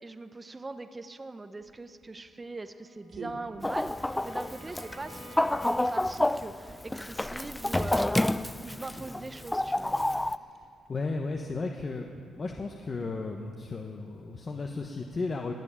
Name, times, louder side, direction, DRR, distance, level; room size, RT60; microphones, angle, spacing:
voice 1, 0.0-8.1 8.5-10.0, right 3 dB, 20° right, 9 dB, 0.8 m, -41 dB
sound 1, 1.6-11.1, right 4 dB, 60° right, 2.6 m, -52 dB
Bowed string instrument, 2.4-6.2, right 1 dB, 85° right, 5.2 m, -52 dB
Chicken rooster, 3.6-10.4, left 1 dB, 10° left, 0.4 m, -29 dB
voice 2, 10.9-15.5, left 3 dB, 35° left, 2 dB, 1.1 m, -34 dB
19.0 x 7.1 x 10.0 m, 2.4 s
cardioid pair, 90°, 0 cm